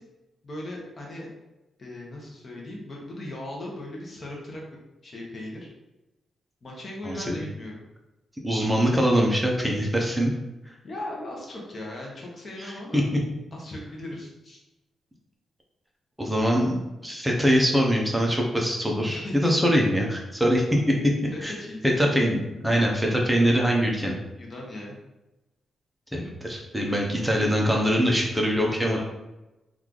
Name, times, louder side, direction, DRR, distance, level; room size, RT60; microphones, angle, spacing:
voice 1, 0.4-1.3 1.8-4.6 5.0-5.7 6.6-7.8 10.8-13.0 13.5-14.6 19.1-19.5 21.3-21.9 24.4-25.0 28.6-29.0, left 1 dB, 30° left, -2 dB, 0.8 m, -38 dB
voice 2, 7.1-7.4 8.4-10.3 12.6-13.0 16.2-16.8 17.0-20.9 21.4-21.5 22.0-24.2 26.1-29.0, equal, 5° right, -1 dB, 0.5 m, -23 dB
3.1 x 2.4 x 3.8 m, 0.99 s
wide cardioid pair, 160°, 0 cm